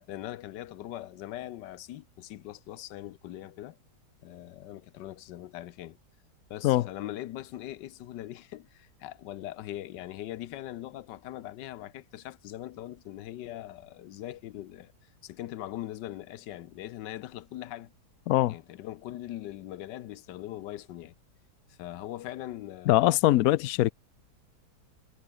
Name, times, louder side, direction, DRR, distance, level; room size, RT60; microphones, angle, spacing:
voice 1, 0.0-3.8 4.2-6.0 6.5-17.9 18.5-21.1 21.7-23.2, left 14 dB, 85° left, 1.4 m, -41 dB
voice 2, 22.9-23.9, left 15 dB, 70° left, 0.9 m, -22 dB
omnidirectional pair, 1.8 m